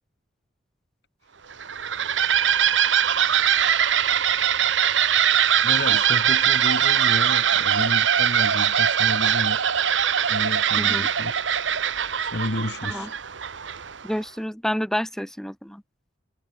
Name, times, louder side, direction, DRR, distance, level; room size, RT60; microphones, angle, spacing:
sound 1, 1.5-14.1, right 9 dB, 90° right, 1.1 m, -21 dB
voice 1, 5.6-9.7 10.3-11.3 12.2-13.1, left 1 dB, 60° left, 2.2 m, -31 dB
voice 2, 10.8-11.1 12.9-13.1 14.0-15.8, equal, ahead, 0.8 m, -29 dB
head